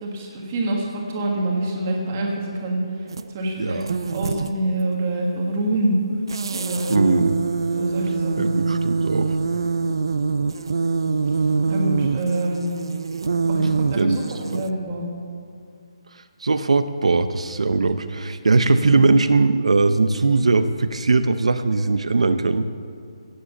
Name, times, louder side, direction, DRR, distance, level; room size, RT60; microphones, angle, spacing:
voice 1, 0.0-2.8 3.3-6.0 6.5-7.0 7.7-8.5 11.7-12.7 13.5-15.1 18.8-18.9, right 1 dB, 20° right, -1 dB, 1.6 m, -26 dB
sound 1, 3.1-3.3 3.8-4.6 6.3-14.7, right 4 dB, 50° right, 0.4 m, -24 dB
voice 2, 3.6-3.9 6.9-7.3 8.4-9.4 14.0-14.2 14.5-14.6 16.4-22.6, right 3 dB, 90° right, 10 dB, 0.7 m, -20 dB
17.0 x 7.6 x 7.1 m, 2.4 s
hypercardioid pair, 180°, 3 cm